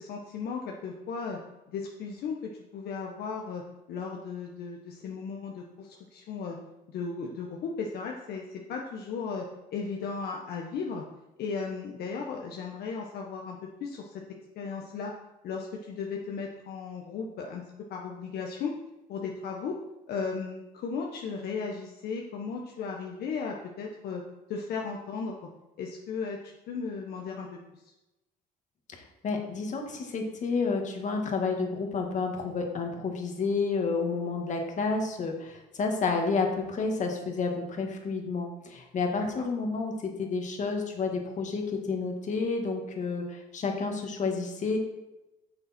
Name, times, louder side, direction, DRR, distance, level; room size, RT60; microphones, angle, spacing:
voice 1, 0.0-1.4 1.7-2.4 2.7-3.6 3.9-6.6 6.9-9.5 9.7-11.0 11.4-14.1 14.5-15.1 15.4-17.6 17.9-18.7 19.1-19.8 20.1-24.2 24.5-25.4 25.8-27.6 39.1-39.5, left 5 dB, 70° left, 0 dB, 1.2 m, -36 dB
voice 2, 28.9-44.8, left 4 dB, 45° left, 3 dB, 1.9 m, -30 dB
10.0 x 6.7 x 4.4 m, 0.97 s
cardioid pair, 110°, 17 cm